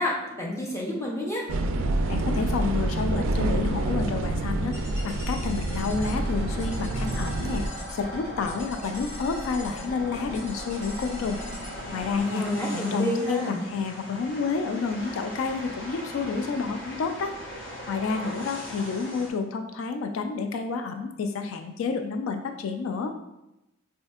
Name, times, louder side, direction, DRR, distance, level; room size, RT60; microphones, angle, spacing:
voice 1, 0.0-1.4 12.3-13.6, equal, 15° left, -3 dB, 0.6 m, -29 dB
sound 1, 1.5-7.7, right 2 dB, 75° right, 0.3 m, -27 dB
voice 2, 2.1-4.8 5.0-7.6 7.9-11.4 11.9-12.4 12.7-17.3 17.9-23.1, left 4 dB, 85° left, 6 dB, 0.3 m, -29 dB
sound 2, 4.7-12.2, equal, 35° left, 1.0 m, -40 dB
sound 3, 5.8-19.3, equal, 65° left, 0.8 m, -40 dB
4.1 x 2.7 x 2.3 m, 0.91 s
head